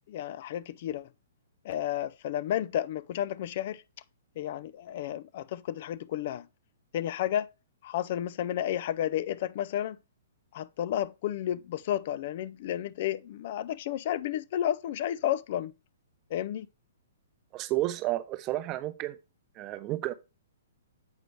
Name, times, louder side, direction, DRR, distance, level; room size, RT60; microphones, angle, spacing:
voice 1, 0.1-1.1 1.6-3.8 4.4-6.5 6.9-7.5 7.8-10.0 10.5-15.7 16.3-16.7, left 11 dB, 45° left, 0.3 m, -32 dB
voice 2, 17.5-19.2 19.6-20.1, right 16 dB, 30° right, 0.5 m, -31 dB
8.0 x 4.9 x 3.2 m
figure-of-eight pair, 115°, 0 cm